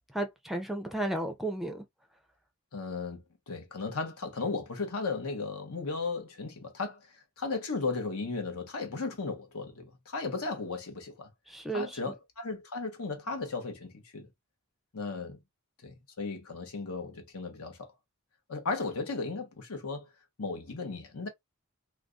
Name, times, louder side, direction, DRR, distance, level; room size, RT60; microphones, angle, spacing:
voice 1, 0.1-1.8 11.5-12.0, right 1 dB, ahead, 0.5 m, -33 dB
voice 2, 2.7-7.1 7.4-11.3 11.7-14.3 14.9-15.4 15.8-17.9 18.5-20.1 20.4-21.3, left 4 dB, 70° left, 1.0 m, -35 dB
2.4 x 2.3 x 3.7 m
head